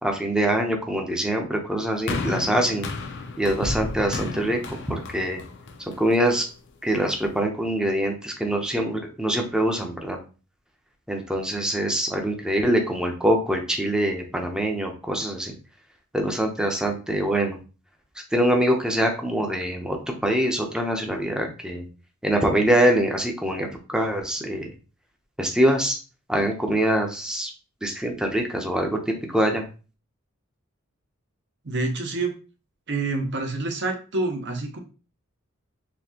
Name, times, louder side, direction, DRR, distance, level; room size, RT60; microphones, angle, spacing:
voice 1, 0.0-2.9 3.4-5.4 6.0-6.4 6.8-10.2 11.1-15.5 16.1-17.6 18.3-20.0 20.2-21.8 22.2-24.7 25.4-26.0 26.3-27.5 27.8-29.0 29.3-29.6, right 1 dB, 5° right, 2 dB, 0.7 m, -24 dB
sound 1, 2.1-6.4 7.2-7.3, left 3 dB, 60° left, 0.6 m, -32 dB
voice 2, 31.6-32.3 32.9-34.8, right 3 dB, 60° right, 3 dB, 0.9 m, -27 dB
4.2 x 2.8 x 2.8 m, 0.34 s
head